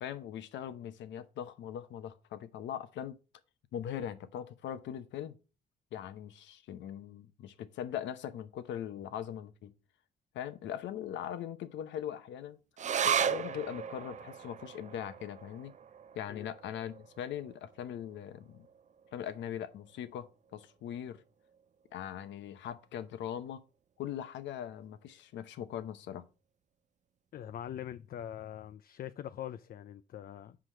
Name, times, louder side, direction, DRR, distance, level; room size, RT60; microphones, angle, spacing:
voice 1, 0.0-3.2 3.7-5.4 5.9-9.7 10.3-12.6 13.0-15.7 16.1-18.7 19.1-21.2 21.9-23.6 24.0-26.2, left 10 dB, 80° left, 0.9 m, -40 dB
sound 1, 12.8-19.5 19.9-20.0 20.3-21.0 21.5-21.6, right 8 dB, 40° right, 0.5 m, -37 dB
voice 2, 27.3-30.6, left 10 dB, 50° left, 0.4 m, -43 dB
5.9 x 4.9 x 6.0 m
cardioid pair, 95°, 19 cm